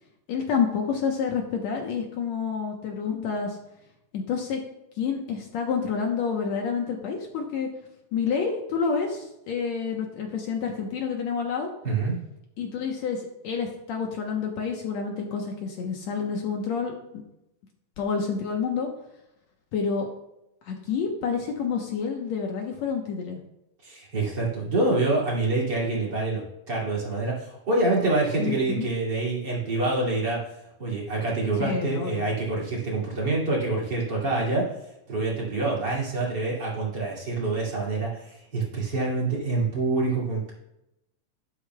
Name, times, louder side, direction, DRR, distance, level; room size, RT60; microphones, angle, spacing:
voice 1, 0.3-3.6 4.1-4.6 5.0-7.7 8.1-11.7 12.6-17.2 18.0-18.9 19.7-20.1 20.7-23.4 28.4-28.9 31.6-32.2, left 6 dB, 65° left, 1 dB, 2.1 m, -28 dB
voice 2, 11.8-12.2 23.8-26.4 26.7-30.4 30.8-34.7 35.1-40.5, right 2 dB, 35° right, -3 dB, 3.0 m, -26 dB
11.5 x 11.5 x 2.3 m, 0.86 s
omnidirectional pair, 3.6 m